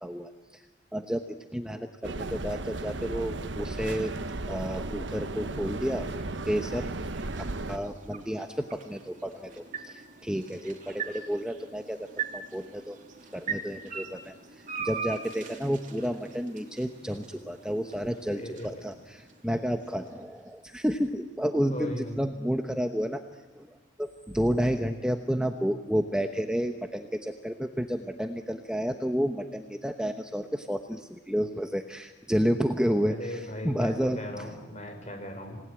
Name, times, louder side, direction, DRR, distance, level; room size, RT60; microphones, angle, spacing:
voice 1, 0.0-0.6 0.9-4.1 4.5-6.1 6.5-6.9 7.4-13.0 13.3-23.2 23.5-34.5, equal, 5° right, 5 dB, 1.0 m, -31 dB
sound 1, 2.0-7.8, right 2 dB, 75° right, 1.2 m, -35 dB
sound 2, 4.8-20.8, right 6 dB, 40° right, 3.2 m, -42 dB
voice 2, 18.2-18.8 21.7-22.2 33.1-35.6, left 1 dB, 35° left, 4 dB, 5.7 m, -38 dB
27.0 x 19.0 x 9.9 m, 1.3 s
head